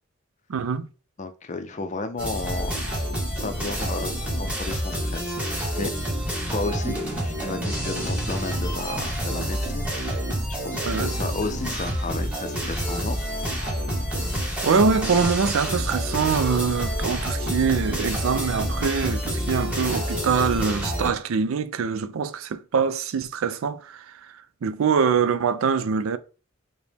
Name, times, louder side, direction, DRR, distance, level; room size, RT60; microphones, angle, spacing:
voice 1, 0.5-0.9 6.9-7.0 10.9-11.1 14.6-24.0 24.6-26.2, right 5 dB, 85° right, 0.4 m, -24 dB
voice 2, 1.2-5.9 6.5-10.2 10.6-13.2, left 3 dB, 35° left, 0.5 m, -33 dB
sound 1, 2.2-21.1, equal, 5° right, 1.0 m, -28 dB
4.9 x 2.1 x 3.4 m
head